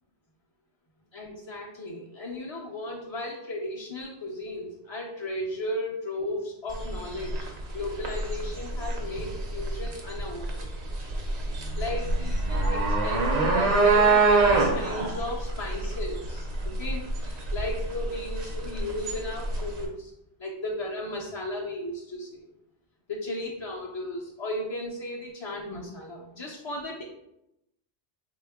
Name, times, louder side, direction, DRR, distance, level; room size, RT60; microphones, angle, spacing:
voice 1, 1.1-7.5 7.7-10.7 11.8-20.1 20.4-22.5 23.1-27.0, left 1 dB, 50° left, -3 dB, 0.3 m, -35 dB
sound 1, 6.7-19.8, right 3 dB, 55° right, 0.5 m, -26 dB
3.5 x 2.2 x 3.4 m, 0.83 s
omnidirectional pair, 1.1 m